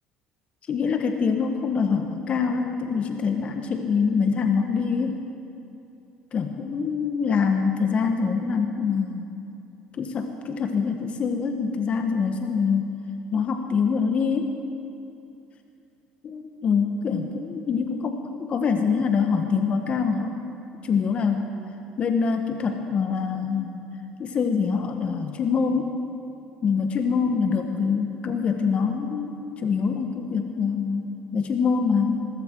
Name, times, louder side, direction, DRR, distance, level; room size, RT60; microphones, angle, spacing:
voice 1, 0.7-5.2 6.3-9.3 10.0-13.0 13.3-14.5 16.3-20.4 20.8-21.5 22.0-23.8 24.2-26.0 26.6-29.3 29.6-32.3, left 5 dB, 45° left, 5 dB, 1.3 m, -24 dB
19.5 x 15.0 x 4.6 m, 2.7 s
supercardioid pair, 80°, 3 cm